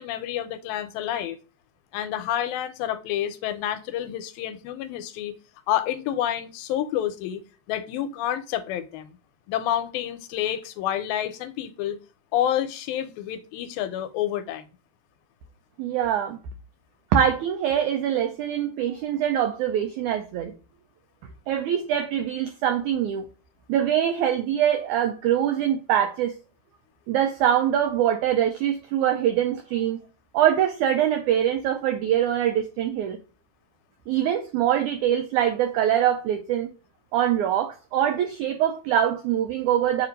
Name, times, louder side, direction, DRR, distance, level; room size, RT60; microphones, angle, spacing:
voice 1, 0.0-1.4 1.9-5.3 5.7-7.4 7.7-9.2 9.5-12.0 12.3-14.7, left 11 dB, 80° left, 2.4 m, -28 dB
voice 2, 15.8-16.4 17.1-20.5 21.5-23.2 23.7-26.4 27.1-30.0 30.3-33.2 34.1-36.7 37.1-40.1, right 10 dB, 85° right, 1.7 m, -23 dB
7.2 x 2.6 x 5.1 m
omnidirectional pair, 4.2 m